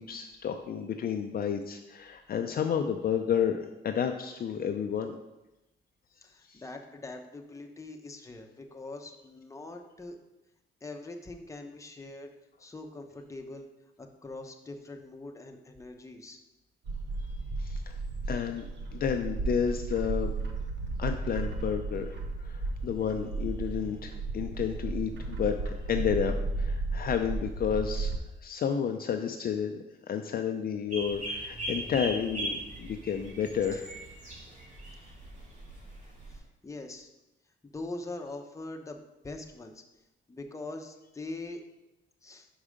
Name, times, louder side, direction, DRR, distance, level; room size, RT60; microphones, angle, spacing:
voice 1, 0.0-5.2 6.5-6.6 17.6-18.0 18.3-18.6 18.9-20.3 21.0-28.1 28.4-29.8 30.1-34.0, left 7 dB, 50° left, 5 dB, 0.5 m, -31 dB
voice 2, 6.2-10.2 10.8-12.3 12.6-13.7 14.0-16.4 33.7-33.8 35.0-35.2 36.3-37.1 37.6-39.8 40.3-41.6 42.2-42.5, left 2 dB, 15° left, 3 dB, 0.8 m, -43 dB
Bird, 16.8-28.2, right 3 dB, 65° right, 1.0 m, -34 dB
sound 1, 30.9-36.4, right 1 dB, 40° right, 2.1 m, -39 dB
5.5 x 4.9 x 5.0 m, 0.96 s
cardioid pair, 90°, 20 cm